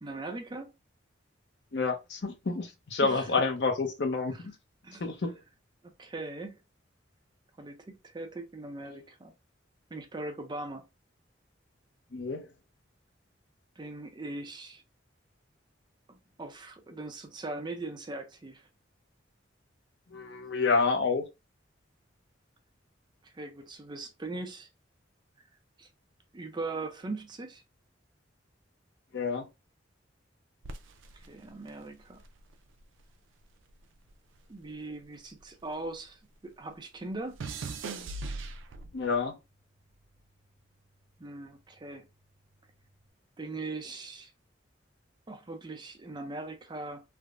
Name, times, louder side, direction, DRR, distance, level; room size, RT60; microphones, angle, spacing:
voice 1, 0.0-0.7 3.0-3.4 4.3-4.4 4.8-5.4 5.8-6.6 7.6-9.3 9.9-10.8 13.8-14.8 16.1-18.7 23.2-24.7 25.8-25.9 26.3-27.6 31.1-32.2 34.5-37.4 41.2-42.0 43.4-44.3 45.3-47.0, right 2 dB, 25° right, 0.4 m, -40 dB
voice 2, 1.7-4.5 5.0-5.4 12.1-12.4 20.1-21.3 29.1-29.5 38.9-39.4, left 4 dB, 60° left, 0.6 m, -29 dB
sound 1, 30.6-33.1 33.4-36.1 36.3-39.1 39.9-40.3, right 3 dB, 85° right, 0.4 m, -41 dB
3.4 x 2.0 x 2.4 m
head